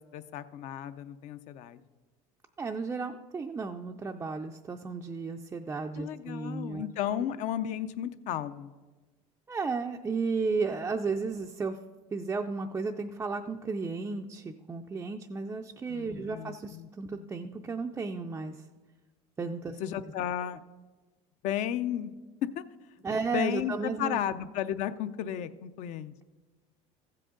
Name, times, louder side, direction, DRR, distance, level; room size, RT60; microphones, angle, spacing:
voice 1, 0.0-1.8 6.0-8.7 15.9-16.9 17.2-17.3 19.8-20.6 21.4-22.1 22.6-22.7 23.1-26.2, left 10 dB, 55° left, 13 dB, 0.5 m, -34 dB
voice 2, 2.6-6.9 9.5-11.8 12.1-18.6 19.4-19.8 23.0-24.2, right 4 dB, 15° right, 2 dB, 0.4 m, -33 dB
15.0 x 7.7 x 3.8 m, 1.3 s
cardioid pair, 140°, 15 cm